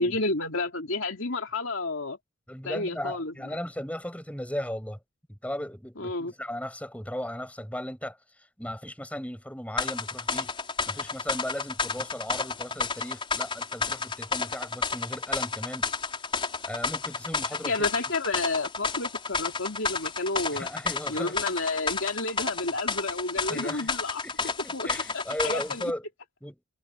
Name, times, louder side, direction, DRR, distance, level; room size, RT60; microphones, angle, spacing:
voice 1, 0.0-2.2 2.6-3.3 6.0-6.3 17.6-20.7 21.1-24.2 24.7-24.9 25.1-25.9, left 2 dB, 60° left, 2.9 m, -30 dB
voice 2, 2.5-5.0 5.3-10.6 10.9-15.9 16.6-17.9 20.5-21.4 23.5-23.9 24.2-26.0 26.4-26.6, equal, 5° left, 6.8 m, -36 dB
sound 1, 9.8-25.9, left 4 dB, 25° left, 5.3 m, -31 dB
head